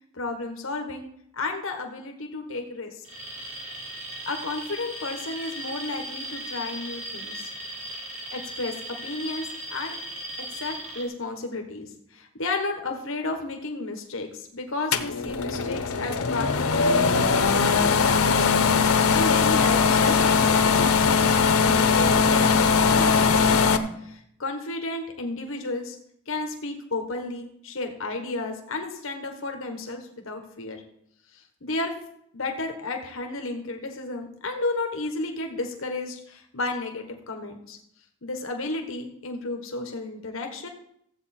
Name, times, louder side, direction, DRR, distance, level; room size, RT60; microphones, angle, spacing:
voice 1, 0.1-1.1 1.3-3.0 4.3-7.5 8.3-10.0 10.4-17.6 18.8-26.0 26.3-30.8 31.3-31.9 32.3-37.8 38.2-40.7, left 2 dB, 65° left, 4 dB, 1.3 m, -33 dB
Alarm, 3.0-11.1, right 1 dB, 70° right, 3.5 m, -37 dB
sound 1, 14.9-23.8, left 5 dB, 85° left, 0.8 m, -20 dB
15.0 x 7.9 x 4.3 m, 0.74 s
head